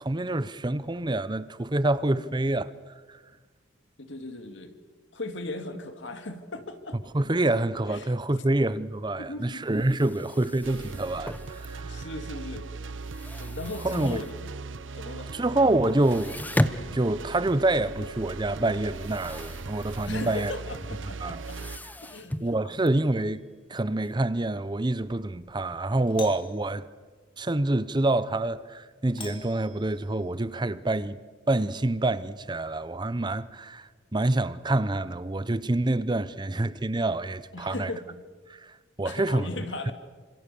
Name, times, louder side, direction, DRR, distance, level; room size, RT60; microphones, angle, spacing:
voice 1, 0.0-2.7 3.1-3.2 7.1-12.0 13.8-14.2 15.3-16.4 16.9-20.5 21.2-21.4 22.4-23.4 23.7-26.9 27.4-31.2 31.5-37.9 38.5-39.5 39.9-40.0, right 2 dB, 25° right, 0.7 m, -27 dB
voice 2, 4.0-4.8 5.1-7.0 7.9-8.5 9.2-9.7 11.9-12.7 13.4-14.4 14.9-15.3 20.1-21.6 22.0-22.5 37.5-38.0 39.0-39.9, left 2 dB, 70° left, 2.3 m, -38 dB
sound 1, 9.6-12.2 12.6-14.7 15.0-15.1 15.4-15.5 15.9-24.1, left 1 dB, 10° left, 0.9 m, -36 dB
sound 2, 10.6-21.8, right 4 dB, 80° right, 0.8 m, -39 dB
Doorbell, 23.0-23.5 26.0-26.7 29.1-30.3, left 5 dB, 25° left, 2.6 m, -45 dB
28.0 x 26.5 x 7.0 m
head